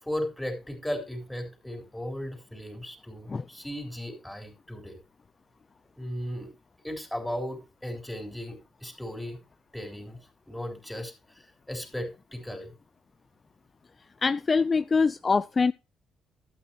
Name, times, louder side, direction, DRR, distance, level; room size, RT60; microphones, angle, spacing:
voice 1, 0.0-5.0 6.0-6.5 6.8-9.4 9.7-10.2 10.5-12.7, equal, 5° left, 3.9 m, -36 dB
voice 2, 14.2-15.7, left 4 dB, 35° left, 0.4 m, -24 dB
12.0 x 9.1 x 2.9 m
cardioid pair, 90°, 0 cm